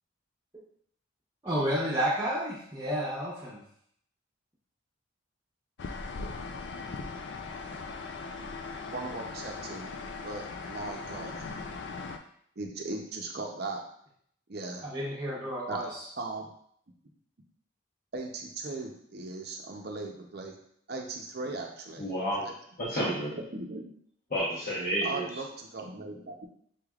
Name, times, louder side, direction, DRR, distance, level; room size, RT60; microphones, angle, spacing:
voice 1, 1.4-3.6 14.8-16.0, equal, 20° right, -9 dB, 0.8 m, -31 dB
sound 1, 5.8-12.2, left 4 dB, 60° left, 0.4 m, -39 dB
voice 2, 8.9-9.9 10.2-11.3 12.6-13.8 14.5-14.9 15.7-15.8 16.2-16.5 18.1-20.5 20.9-22.1 22.4-22.5 22.9-23.1 23.5-23.9 25.0-26.5, right 3 dB, 50° right, 2 dB, 0.6 m, -38 dB
voice 3, 22.0-22.4 22.8-23.4 24.3-25.3, equal, 45° left, -8 dB, 1.0 m, -30 dB
5.8 x 3.3 x 2.4 m, 0.66 s
head